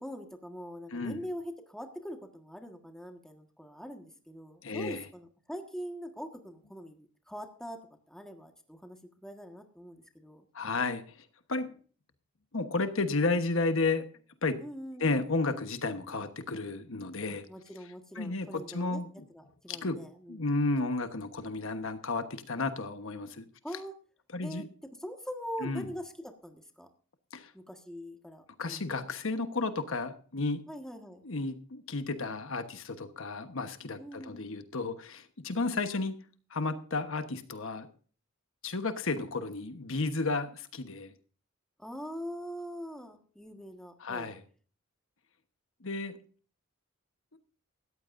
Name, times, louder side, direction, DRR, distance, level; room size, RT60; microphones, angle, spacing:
voice 1, 0.0-7.8 8.1-10.4 14.6-15.3 17.3-19.0 19.3-20.5 22.6-22.7 23.6-23.9 24.4-24.6 25.0-26.9 27.5-28.9 30.7-31.2 34.0-34.5 41.8-44.3, equal, 5° left, 4 dB, 1.5 m, -43 dB
voice 2, 0.9-1.2 4.6-5.0 10.5-11.7 12.5-14.0 14.4-14.6 15.0-17.4 18.1-19.1 19.7-20.0 20.3-23.4 24.3-24.7 25.6-25.9 27.3-27.5 28.6-30.6 31.2-36.1 36.5-37.9 38.6-41.1 44.0-44.4 45.8-46.2 47.3-47.4, left 3 dB, 65° left, 9 dB, 1.2 m, -32 dB
18.0 x 14.0 x 2.6 m, 0.42 s
head